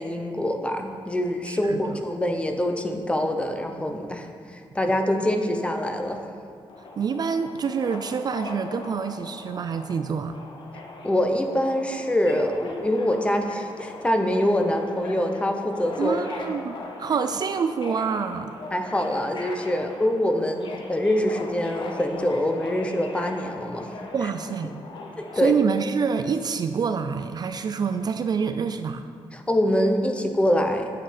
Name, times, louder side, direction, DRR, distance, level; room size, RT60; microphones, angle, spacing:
voice 1, 0.0-6.2 11.0-16.4 18.7-23.9 25.2-25.5 29.3-30.9, left 1 dB, 10° left, 5 dB, 0.8 m, -25 dB
voice 2, 1.5-1.8 7.0-10.4 16.0-18.5 24.1-24.8 25.3-29.1, right 6 dB, 45° right, 9 dB, 0.4 m, -27 dB
Subway metro underground, 6.7-25.5, left 3 dB, 60° left, 1.0 m, -40 dB
8.3 x 7.7 x 5.1 m, 2.2 s
wide cardioid pair, 135°, 9 cm